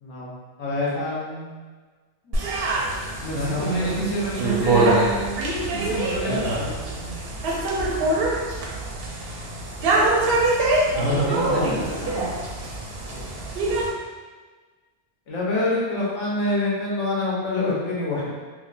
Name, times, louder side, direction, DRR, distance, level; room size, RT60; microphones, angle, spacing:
voice 1, 0.6-1.5 3.3-3.9 10.9-11.7 13.1-13.3 15.3-18.3, left 2 dB, 85° left, -6 dB, 1.1 m, -26 dB
sound 1, 2.3-13.9, right 2 dB, 65° right, 0.7 m, -24 dB
voice 2, 3.2-5.4 5.7-7.1 11.1-12.3, right 2 dB, 30° left, -7 dB, 0.5 m, -29 dB
3.6 x 2.1 x 2.4 m, 1.4 s
omnidirectional pair, 1.2 m